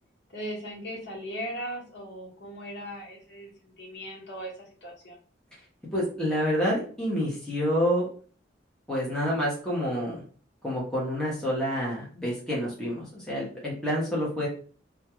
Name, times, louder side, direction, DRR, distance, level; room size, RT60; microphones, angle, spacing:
voice 1, 0.3-5.2, equal, 65° left, -3 dB, 1.0 m, -38 dB
voice 2, 5.9-8.1 8.9-10.2 10.6-14.5, equal, 5° left, -6 dB, 0.7 m, -28 dB
2.2 x 2.2 x 2.8 m, 0.41 s
head